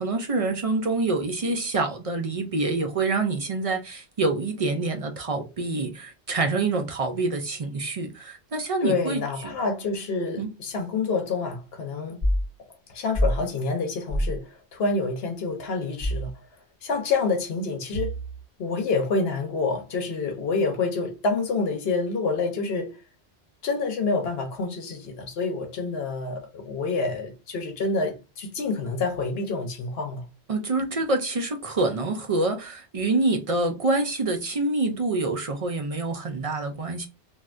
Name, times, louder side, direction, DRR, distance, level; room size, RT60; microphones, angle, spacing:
voice 1, 0.0-9.2 10.4-10.5 30.5-37.1, right 3 dB, 50° right, 0.4 m, -26 dB
voice 2, 8.8-12.2 12.9-16.3 16.8-18.1 18.6-23.0 23.6-30.3, left 3 dB, 65° left, 0.9 m, -27 dB
sound 1, 12.2-12.5 13.1-13.4 14.1-14.4 16.0-16.3 17.9-18.4, equal, 35° right, 1.5 m, -25 dB
3.2 x 2.6 x 2.4 m
omnidirectional pair, 1.1 m